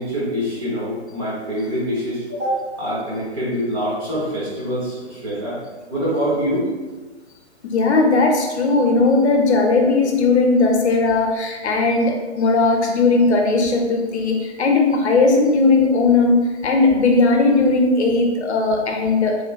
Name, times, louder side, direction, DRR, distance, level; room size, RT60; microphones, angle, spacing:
voice 1, 0.0-5.6 5.9-6.7, equal, 20° right, -8 dB, 0.7 m, -25 dB
voice 2, 7.6-19.4, left 3 dB, 70° left, 2 dB, 0.7 m, -17 dB
3.1 x 3.0 x 2.2 m, 1.3 s
hypercardioid pair, 160°, 35 cm